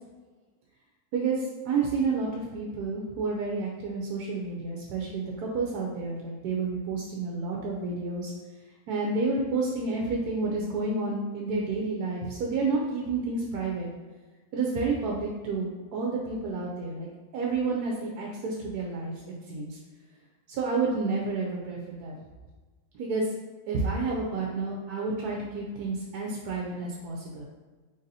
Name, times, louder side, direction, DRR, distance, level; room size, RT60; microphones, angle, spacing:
voice 1, 1.1-8.3 8.9-13.9 14.5-17.1 17.3-19.1 19.5-19.8 20.5-22.1 22.9-23.3 23.7-27.4, right 3 dB, 90° right, -2 dB, 1.1 m, -30 dB
3.4 x 2.6 x 4.0 m, 1.3 s
omnidirectional pair, 1.6 m